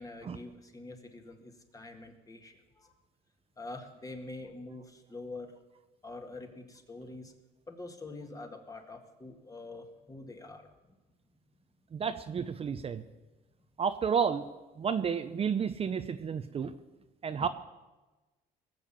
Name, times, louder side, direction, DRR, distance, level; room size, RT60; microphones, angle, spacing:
voice 1, 0.0-2.9 3.6-5.5 6.0-7.3 7.7-10.7, left 2 dB, 20° left, 5 dB, 1.9 m, -45 dB
voice 2, 11.9-13.0 13.8-14.5 14.8-16.7 17.2-17.5, right 6 dB, 35° right, 9 dB, 0.7 m, -31 dB
19.5 x 7.4 x 7.4 m, 1.1 s
cardioid pair, 110°, 17 cm